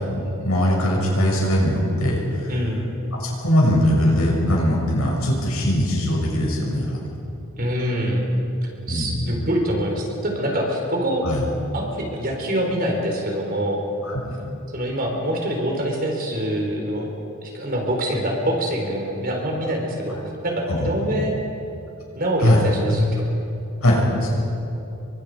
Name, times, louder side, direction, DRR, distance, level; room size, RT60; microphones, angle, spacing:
voice 1, 0.1-2.5 3.1-7.0 8.9-9.2 11.2-11.4 14.0-14.2 20.1-20.2 20.7-20.9 22.4-22.6 23.8-24.3, equal, 80° left, -2 dB, 6.7 m, -21 dB
voice 2, 2.5-2.8 7.6-8.2 8.6-11.3 11.7-13.8 14.7-17.1 17.4-21.4 22.1-23.3, equal, 40° right, 0 dB, 4.4 m, -25 dB
29.0 x 23.5 x 5.1 m, 2.9 s
head